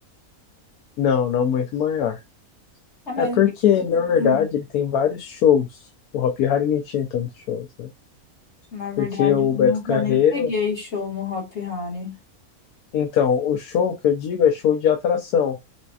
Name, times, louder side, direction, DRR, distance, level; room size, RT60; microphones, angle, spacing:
voice 1, 1.0-2.2 3.2-5.8 6.1-7.9 9.0-10.5 12.9-15.6, left 8 dB, 90° left, 1.1 m, -21 dB
voice 2, 3.1-3.4 4.2-4.4 8.7-12.1, left 4 dB, 50° left, 1.6 m, -28 dB
5.0 x 2.2 x 2.3 m
omnidirectional pair, 1.6 m